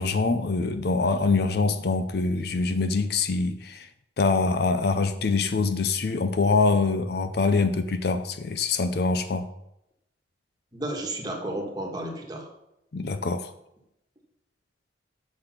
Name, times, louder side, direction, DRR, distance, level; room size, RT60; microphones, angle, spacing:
voice 1, 0.0-3.9 4.2-9.5 12.9-13.5, left 3 dB, 55° left, 0.5 m, -24 dB
voice 2, 10.7-12.5, right 1 dB, 20° right, 1.4 m, -32 dB
6.8 x 5.9 x 5.8 m
head